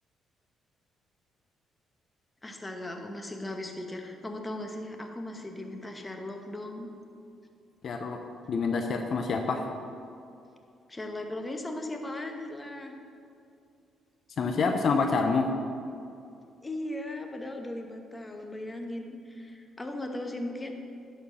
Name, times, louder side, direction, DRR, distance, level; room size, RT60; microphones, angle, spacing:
voice 1, 2.4-6.9 10.9-13.0 16.6-20.7, left 1 dB, 20° left, 4 dB, 1.1 m, -37 dB
voice 2, 7.8-8.2 8.5-9.7 14.4-15.5, left 4 dB, 55° left, 4 dB, 0.6 m, -27 dB
11.0 x 4.4 x 6.4 m, 2.5 s
cardioid pair, 90°, 0 cm